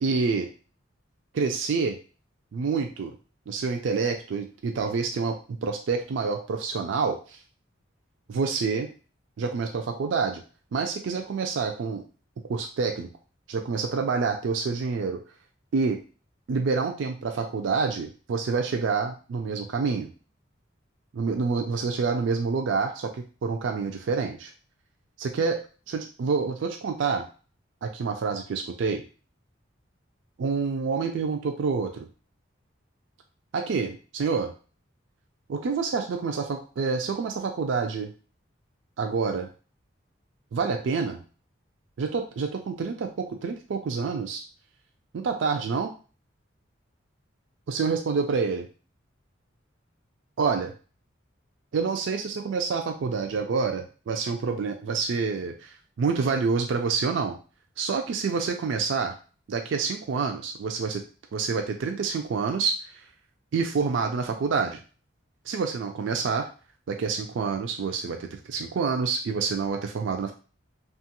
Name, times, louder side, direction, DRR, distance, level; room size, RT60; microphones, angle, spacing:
voice 1, 0.0-0.5 1.3-2.0 2.5-3.1 3.5-7.4 8.3-8.9 9.4-10.4 10.7-12.0 12.5-13.1 13.5-15.2 15.7-16.0 16.5-20.1 21.1-24.5 25.2-27.3 27.8-29.0 30.4-32.1 33.5-34.5 35.5-38.1 39.0-39.5 40.5-41.2 42.0-44.4 45.1-45.9 47.7-48.7 50.4-50.7 51.7-57.4 57.8-59.1 59.5-61.0 61.3-63.0 63.5-64.8 65.5-66.5 66.9-70.3, right 5 dB, 70° right, 4 dB, 0.3 m, -27 dB
2.9 x 2.3 x 2.8 m, 0.36 s
head